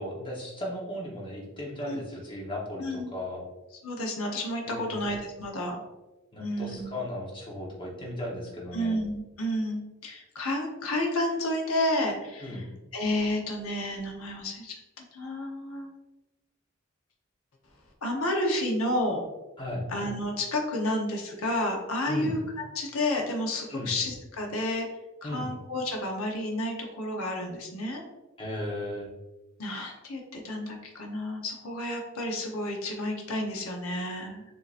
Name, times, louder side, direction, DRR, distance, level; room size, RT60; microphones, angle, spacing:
voice 1, 0.0-3.4 4.7-5.0 6.3-9.0 12.4-12.6 19.6-19.8 22.1-22.4 23.7-23.9 25.2-25.5 28.4-29.1, left 1 dB, 25° left, -3 dB, 1.1 m, -36 dB
voice 2, 2.8-3.1 3.8-5.8 6.4-7.0 8.7-12.7 12.9-15.9 18.0-19.2 19.9-24.9 25.2-28.0 29.6-34.4, left 1 dB, 85° left, 1 dB, 1.0 m, -31 dB
6.7 x 2.9 x 2.5 m, 1.1 s
head